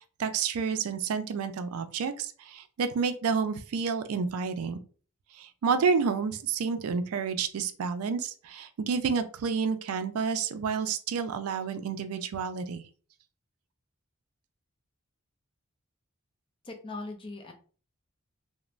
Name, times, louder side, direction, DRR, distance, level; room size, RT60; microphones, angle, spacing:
voice 1, 0.2-4.8 5.3-12.8, right 5 dB, 85° right, 9 dB, 0.4 m, -30 dB
voice 2, 16.6-17.5, left 2 dB, 25° left, 4 dB, 0.5 m, -39 dB
3.0 x 2.1 x 2.4 m, 0.40 s
head